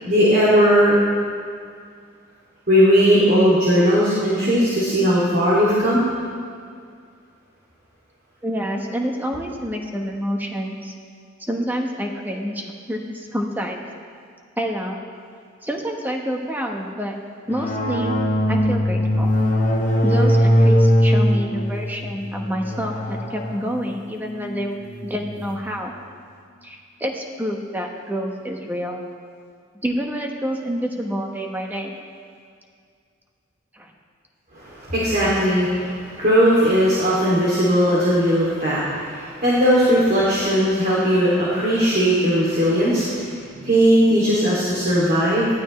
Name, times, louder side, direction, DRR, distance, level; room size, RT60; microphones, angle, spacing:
voice 1, 0.1-1.0 2.7-6.0 34.5-43.4 43.6-45.5, equal, 50° right, -8 dB, 2.8 m, -18 dB
voice 2, 8.4-10.9 11.5-13.8 14.6-15.0 15.6-17.1 17.5-19.3 20.0-24.8 25.0-25.9 26.6-29.0 29.8-31.9 33.7-33.9, equal, 10° right, 1 dB, 1.2 m, -28 dB
sound 1, 17.5-25.6, equal, 45° left, 1.5 m, -20 dB
19.0 x 13.0 x 3.3 m, 2.2 s
head